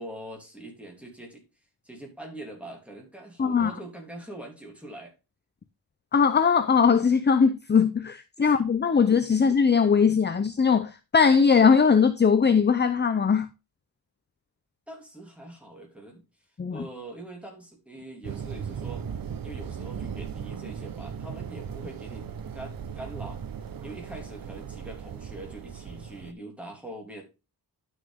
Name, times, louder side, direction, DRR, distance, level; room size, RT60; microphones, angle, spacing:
voice 1, 0.0-1.4 1.8-5.1 8.4-8.6 14.9-16.2 16.7-19.0 19.4-22.2 22.5-23.4 23.8-27.2, right 1 dB, 5° right, 3.0 m, -43 dB
voice 2, 3.4-3.7 6.1-13.5 16.6-16.9, left 6 dB, 25° left, 0.5 m, -20 dB
sound 1, 18.2-26.3, right 7 dB, 55° right, 0.8 m, -37 dB
11.5 x 6.4 x 3.5 m
wide cardioid pair, 175°, 40 cm